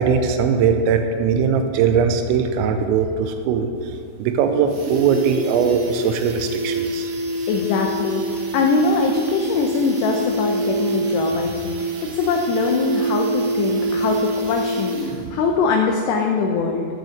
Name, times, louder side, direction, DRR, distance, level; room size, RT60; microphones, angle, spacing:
voice 1, 0.0-3.7 4.2-7.1, right 6 dB, 85° right, 6 dB, 3.3 m, -20 dB
sound 1, 3.8-3.9 4.2-4.3 4.5-15.4 15.7-15.8, right 1 dB, 65° right, 3.2 m, -26 dB
voice 2, 7.5-8.2 8.5-14.2 14.4-15.0 15.3-16.9, left 4 dB, 80° left, 2 dB, 2.4 m, -22 dB
13.5 x 6.6 x 6.5 m, 2.4 s
omnidirectional pair, 5.9 m